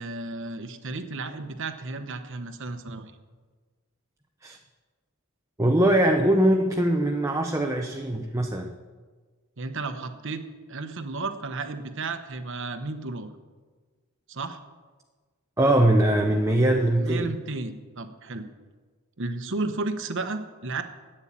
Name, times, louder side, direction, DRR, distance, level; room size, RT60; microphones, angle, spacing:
voice 1, 0.0-3.1 9.6-10.4 10.7-13.3 14.3-14.6 17.0-18.5 19.2-20.8, right 3 dB, 60° right, 9 dB, 1.0 m, -33 dB
voice 2, 5.6-8.7 15.6-17.3, right 1 dB, 15° right, 3 dB, 0.7 m, -22 dB
11.0 x 8.9 x 8.7 m, 1.4 s
head